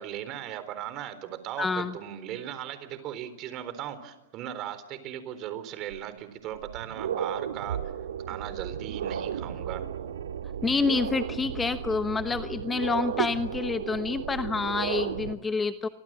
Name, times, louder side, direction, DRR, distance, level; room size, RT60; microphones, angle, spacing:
voice 1, 0.0-7.9 8.3-9.9, right 11 dB, 35° right, 12 dB, 4.0 m, -38 dB
voice 2, 1.6-1.9 10.6-15.9, left 4 dB, 10° left, 11 dB, 1.0 m, -28 dB
sound 1, 5.9-6.0 6.5-15.3, right 8 dB, 90° right, 2.0 m, -34 dB
28.5 x 24.5 x 7.7 m, 1.0 s
hypercardioid pair, 140°, 0 cm